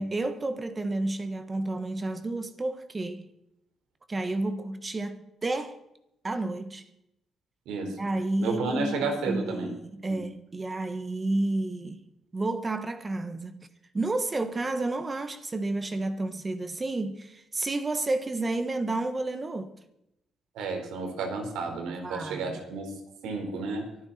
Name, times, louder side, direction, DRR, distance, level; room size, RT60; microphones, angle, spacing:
voice 1, 0.0-3.3 4.1-5.8 6.2-6.8 8.0-12.0 12.3-13.7 13.9-19.7 21.9-22.6, right 2 dB, 25° right, 1.4 m, -31 dB
voice 2, 7.7-8.0 8.4-9.8 10.1-10.2 20.5-22.9 23.2-23.9, right 3 dB, 90° right, 4.4 m, -31 dB
24.0 x 10.0 x 4.3 m
cardioid pair, 90°, 0 cm